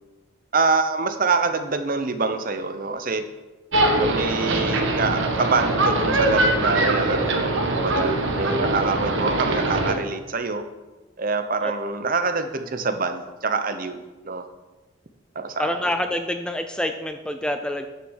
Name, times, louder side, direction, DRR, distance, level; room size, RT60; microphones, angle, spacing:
voice 1, 0.5-3.2 4.0-10.6 11.2-14.5 15.3-15.8, right 4 dB, 40° right, 9 dB, 0.7 m, -25 dB
sound 1, 3.7-9.9, right 2 dB, 60° right, 1.3 m, -22 dB
voice 2, 15.6-17.9, left 1 dB, 5° left, 6 dB, 0.4 m, -26 dB
9.6 x 6.6 x 6.4 m, 1.1 s
head